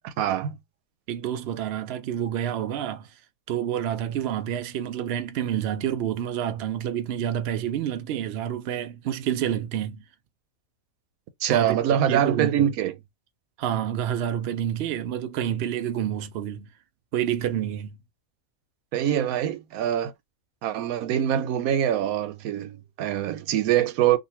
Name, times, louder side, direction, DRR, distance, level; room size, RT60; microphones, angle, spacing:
voice 1, 0.0-0.6 11.4-12.9 18.9-20.1 20.6-24.2, right 10 dB, 90° right, 1.0 m, -24 dB
voice 2, 1.1-3.1 3.5-10.0 11.5-11.8 12.1-12.7 13.6-16.7 17.1-18.0, right 10 dB, 65° right, 0.6 m, -28 dB
2.6 x 2.6 x 2.8 m
omnidirectional pair, 1.5 m